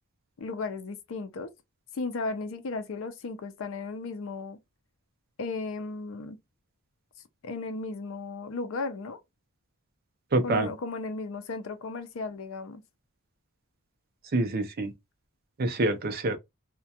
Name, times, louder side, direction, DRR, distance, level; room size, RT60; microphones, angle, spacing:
voice 1, 0.4-1.5 1.9-4.6 5.4-6.4 7.4-9.2 10.4-12.8, left 3 dB, 65° left, 0.5 m, -35 dB
voice 2, 10.3-10.7 14.3-14.9 15.6-16.4, right 2 dB, 45° right, 0.5 m, -26 dB
2.3 x 2.1 x 2.7 m
head